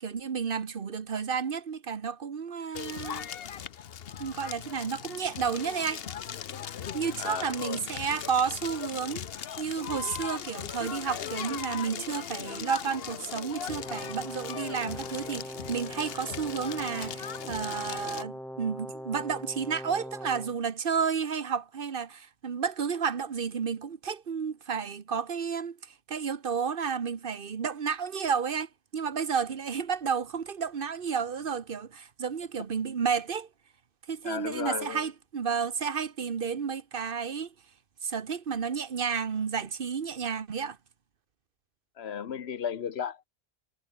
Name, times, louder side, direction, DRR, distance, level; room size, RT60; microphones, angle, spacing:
voice 1, 0.0-3.3 4.2-6.0 6.9-9.3 9.6-25.8 26.1-33.5 34.1-37.5 38.0-40.8, right 6 dB, 60° right, 1.3 m, -31 dB
Crackle, 2.7-18.2, left 9 dB, 70° left, 1.0 m, -39 dB
voice 2, 7.2-7.9 34.2-35.1 42.0-43.3, left 8 dB, 85° left, 1.2 m, -35 dB
Brass instrument, 13.7-20.6, equal, ahead, 5.5 m, -41 dB
omnidirectional pair, 1.1 m